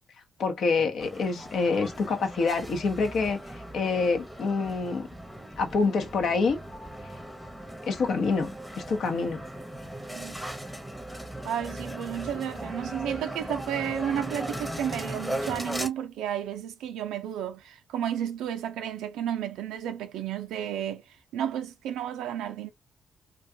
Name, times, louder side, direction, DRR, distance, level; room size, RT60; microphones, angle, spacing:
voice 1, 0.4-3.4 3.7-5.1 5.6-6.6 7.9-9.4, left 4 dB, 65° left, 0.7 m, -26 dB
sound 1, 1.0-15.9, right 1 dB, ahead, 0.8 m, -38 dB
voice 2, 10.1-10.4 11.4-21.0 21.3-22.7, right 10 dB, 75° right, 0.4 m, -32 dB
2.5 x 2.2 x 2.6 m
hypercardioid pair, 45°, 0 cm